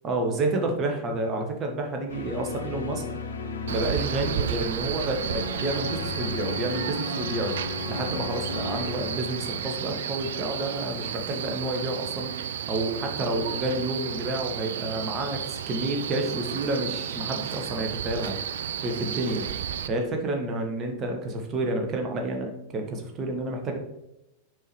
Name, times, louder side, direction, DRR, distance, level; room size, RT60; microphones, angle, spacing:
voice 1, 0.0-3.0 3.7-7.6 7.9-12.3 12.7-18.4 18.8-19.4 19.9-23.8, right 2 dB, 30° right, 3 dB, 1.3 m, -29 dB
sound 1, 2.1-10.9, left 4 dB, 70° left, 0.6 m, -35 dB
Male speech man speaking, 3.7-19.9, right 9 dB, 60° right, 0.4 m, -33 dB
8.2 x 4.7 x 3.2 m, 0.90 s
figure-of-eight pair, 90°, 0 cm